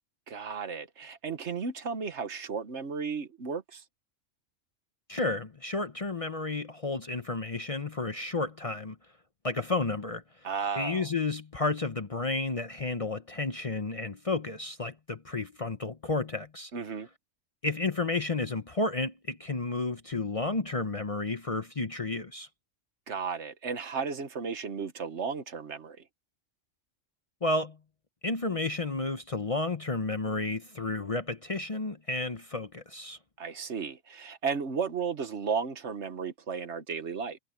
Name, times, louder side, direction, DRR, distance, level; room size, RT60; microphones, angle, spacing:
voice 1, 0.3-3.8 10.4-11.1 16.7-17.1 23.1-26.0 33.4-37.4, right 5 dB, 65° right, 1.5 m, -34 dB
voice 2, 5.1-9.0 9.4-10.5 10.8-16.7 17.6-22.5 27.4-27.8 28.2-33.2, left 3 dB, 30° left, 0.8 m, -32 dB
omnidirectional pair, 1.3 m